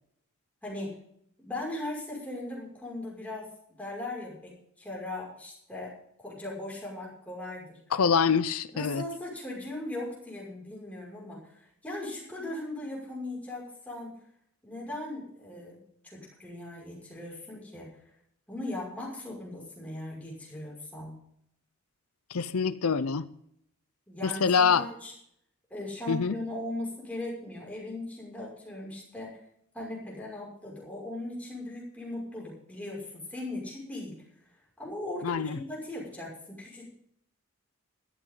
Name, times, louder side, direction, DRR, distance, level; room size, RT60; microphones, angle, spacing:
voice 1, 0.6-1.0 1.4-3.5 3.8-5.9 6.2-7.8 8.7-11.5 11.8-14.2 14.6-17.9 18.5-21.2 24.1-24.4 24.7-25.1 25.7-29.4 29.7-34.2 34.8-36.8, left 1 dB, 5° left, -4 dB, 6.0 m, -38 dB
voice 2, 7.9-9.0 22.3-23.3 24.2-24.8 26.1-26.4 35.2-35.6, left 6 dB, 75° left, 14 dB, 0.6 m, -25 dB
17.0 x 13.5 x 3.9 m, 0.71 s
head